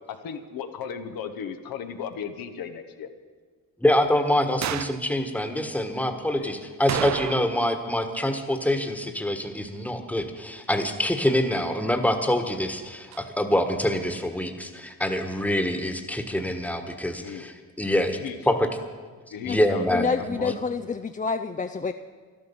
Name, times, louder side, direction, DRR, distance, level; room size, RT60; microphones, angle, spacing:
voice 1, 0.1-3.1 6.4-6.5 17.2-17.5 18.2-18.6 19.3-20.6, left 7 dB, 80° left, 6 dB, 1.2 m, -35 dB
voice 2, 3.8-18.7 19.4-20.5, left 1 dB, 5° left, 6 dB, 1.5 m, -25 dB
sound 1, 4.6-5.1 6.9-7.7 8.0-8.1 13.1-13.2, right 11 dB, 50° right, 0.5 m, -31 dB
voice 3, 19.9-21.9, left 5 dB, 25° left, 7 dB, 0.5 m, -28 dB
12.5 x 12.0 x 7.1 m, 1.5 s
cardioid pair, 75°, 35 cm